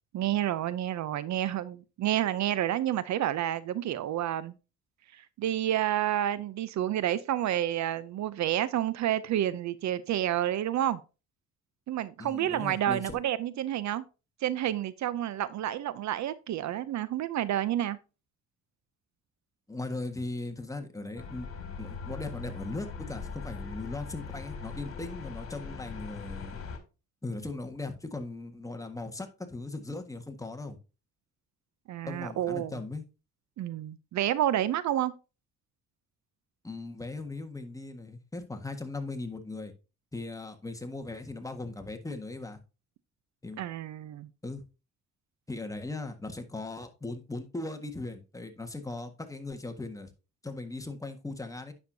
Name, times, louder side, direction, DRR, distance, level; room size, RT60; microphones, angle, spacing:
voice 1, 0.1-4.5 5.1-11.0 11.9-14.0 14.4-18.0 31.9-32.8 33.6-35.1 43.6-44.3, right 12 dB, 65° right, 0.6 m, -29 dB
voice 2, 12.2-13.2 19.7-21.5 21.8-26.6 27.2-30.8 32.1-33.0 36.6-39.7 40.1-42.6 43.4-43.6 44.4-44.6 45.5-50.1 50.4-51.7, left 2 dB, 10° left, 1.5 m, -38 dB
sound 1, 21.2-26.8, left 5 dB, 50° left, 2.3 m, -40 dB
9.5 x 6.4 x 2.7 m
cardioid pair, 90°, 30 cm